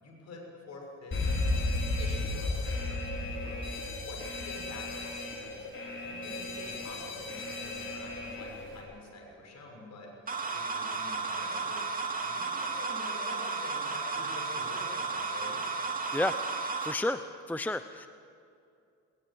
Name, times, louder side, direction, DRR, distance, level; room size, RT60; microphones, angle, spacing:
voice 1, 0.0-1.3 2.0-3.7 4.0-10.1 10.5-11.8 12.2-15.6, left 2 dB, 65° left, 1 dB, 6.5 m, -47 dB
Alarm, 1.1-8.8, left 2 dB, 40° left, 5.6 m, -34 dB
sound 1, 10.3-16.9, right 4 dB, 30° right, 2.6 m, -33 dB
voice 2, 16.8-17.2 17.5-18.1, left 1 dB, 5° left, 10 dB, 0.7 m, -30 dB
20.5 x 20.0 x 8.9 m, 2.5 s
cardioid pair, 90°, 30 cm